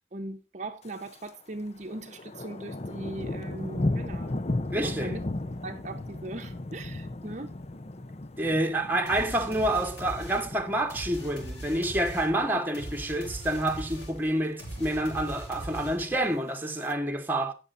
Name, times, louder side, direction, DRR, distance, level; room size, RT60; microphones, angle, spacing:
voice 1, 0.1-4.4 4.8-5.2 5.6-7.5, right 2 dB, 40° right, 0.9 m, -39 dB
Thunder, 0.8-1.4 1.7-12.0 12.4-12.7 13.2-13.6 13.9-14.0 14.2-14.3 14.6-15.2 16.0-16.9, left 2 dB, 35° left, 0.6 m, -36 dB
voice 2, 4.7-5.2 8.4-17.5, right 1 dB, 10° right, 1.3 m, -28 dB
sound 1, 9.1-16.3, right 1 dB, 65° left, 6.1 m, -40 dB
17.0 x 7.0 x 2.6 m
head